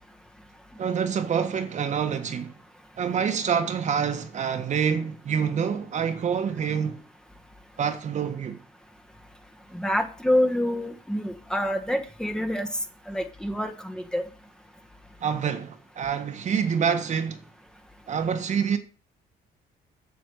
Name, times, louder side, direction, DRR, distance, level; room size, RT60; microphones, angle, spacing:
voice 1, 0.8-2.5 3.0-7.0 7.8-8.6 15.2-17.4 18.1-18.8, right 7 dB, 45° right, 1.5 m, -26 dB
voice 2, 9.7-12.7 13.1-14.2, left 1 dB, 5° left, 1.2 m, -27 dB
9.7 x 6.9 x 6.5 m
cardioid pair, 110°, 17 cm